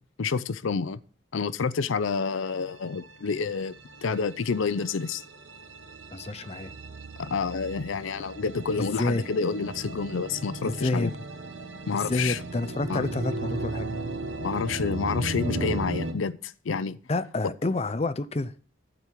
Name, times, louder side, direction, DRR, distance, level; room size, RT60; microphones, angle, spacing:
voice 1, 0.2-1.0 1.3-3.7 4.0-5.2 7.2-11.1 11.9-12.4 12.9-13.1 14.4-17.0, left 5 dB, 85° left, 0.5 m, -29 dB
sound 1, 2.1-16.1, right 2 dB, 75° right, 1.2 m, -36 dB
voice 2, 6.1-6.7 8.8-9.2 10.6-11.1 11.9-13.9 17.1-18.5, left 2 dB, 30° left, 0.5 m, -29 dB
12.0 x 4.6 x 8.2 m
head